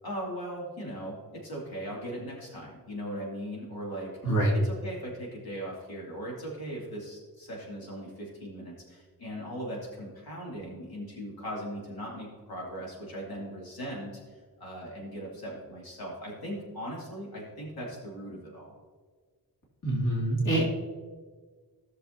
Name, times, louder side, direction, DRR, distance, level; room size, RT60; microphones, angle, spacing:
voice 1, 0.0-14.1 14.6-18.7, equal, 85° left, -3 dB, 2.7 m, -39 dB
voice 2, 19.8-20.7, right 1 dB, 60° left, -4 dB, 2.5 m, -25 dB
16.0 x 6.6 x 2.8 m, 1.5 s
wide cardioid pair, 175°, 36 cm